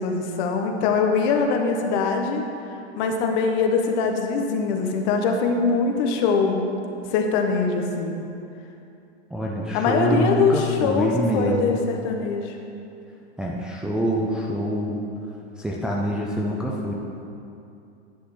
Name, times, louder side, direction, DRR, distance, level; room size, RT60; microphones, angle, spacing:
voice 1, 0.0-2.4 3.0-6.7 7.1-8.1 9.7-12.5, left 4 dB, 45° left, 3 dB, 1.0 m, -22 dB
voice 2, 9.3-11.8 13.4-15.0 15.6-16.9, equal, ahead, -4 dB, 0.5 m, -25 dB
10.5 x 7.9 x 3.2 m, 2.7 s
hypercardioid pair, 125°, 34 cm